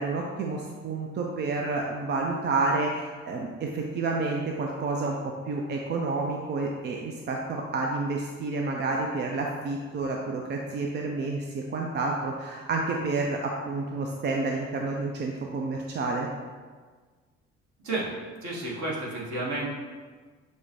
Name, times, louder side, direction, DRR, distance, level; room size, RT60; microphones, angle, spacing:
voice 1, 0.0-5.2 5.5-16.3, right 3 dB, 30° right, 0 dB, 0.4 m, -29 dB
voice 2, 17.8-18.1 18.4-19.7, right 2 dB, 50° right, -5 dB, 1.2 m, -31 dB
6.1 x 2.1 x 2.7 m, 1.5 s
figure-of-eight pair, 50°, 37 cm